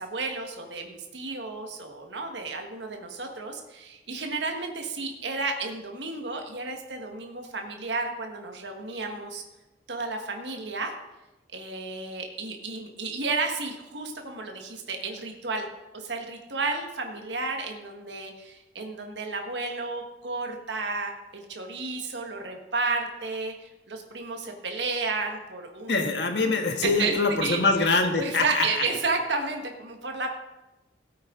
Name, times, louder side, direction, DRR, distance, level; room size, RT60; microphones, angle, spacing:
voice 1, 0.0-9.4 9.9-10.9 11.5-15.7 15.9-26.0 26.8-27.1 27.4-27.6 28.2-30.3, right 3 dB, 75° right, 3 dB, 1.5 m, -32 dB
voice 2, 25.9-28.8, left 3 dB, 70° left, 4 dB, 1.5 m, -24 dB
16.5 x 8.7 x 3.8 m, 1.0 s
head